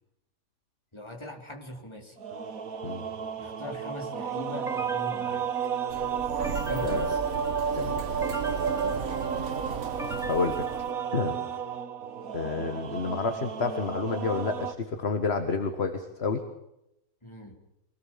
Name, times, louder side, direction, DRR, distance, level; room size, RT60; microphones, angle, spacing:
voice 1, 0.9-2.2 3.4-5.4 6.4-7.2 17.2-17.5, left 1 dB, 20° left, 2 dB, 4.0 m, -40 dB
sound 1, 2.2-14.7, right 7 dB, 70° right, 1.7 m, -32 dB
sound 2, 4.7-11.6, equal, 5° right, 0.5 m, -43 dB
Sliding door, 5.9-10.9, right 6 dB, 55° right, 1.6 m, -37 dB
voice 2, 10.3-10.7 11.1-11.4 12.3-16.4, left 4 dB, 45° left, 7 dB, 1.8 m, -29 dB
24.5 x 19.0 x 7.5 m, 0.86 s
omnidirectional pair, 1.5 m